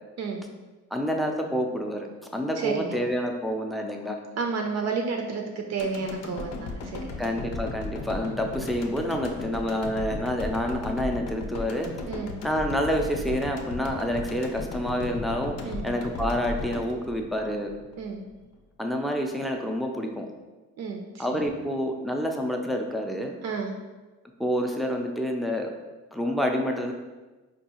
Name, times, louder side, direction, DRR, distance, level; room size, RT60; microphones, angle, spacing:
voice 1, 0.9-2.1 2.3-4.2 7.2-11.9 12.4-15.6 15.8-17.7 18.8-20.3 21.2-23.4 24.4-25.7 26.1-26.9, equal, ahead, 2 dB, 0.4 m, -28 dB
voice 2, 2.6-3.0 4.4-7.1 12.1-12.3 15.6-15.9 18.0-18.2 20.8-21.4 23.4-23.7, right 5 dB, 60° right, 3 dB, 0.5 m, -31 dB
sound 1, 5.8-18.0 18.4-18.5, left 3 dB, 55° left, 0.6 m, -36 dB
4.5 x 2.4 x 2.8 m, 1.2 s
cardioid pair, 90°, 30 cm